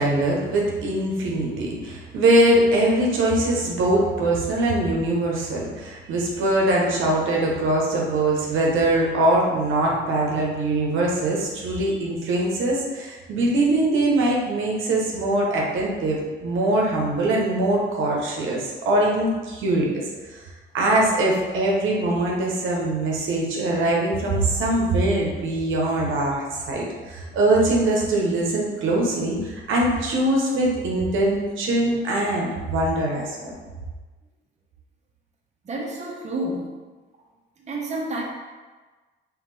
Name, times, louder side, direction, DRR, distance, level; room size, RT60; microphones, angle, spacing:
voice 1, 0.0-20.0 20.3-20.4 20.7-33.6, right 1 dB, 80° right, -2 dB, 0.9 m, -22 dB
voice 2, 35.6-36.7 37.6-38.2, right 1 dB, 35° right, -2 dB, 0.8 m, -29 dB
3.6 x 3.2 x 3.2 m, 1.3 s
cardioid pair, 90°, 20 cm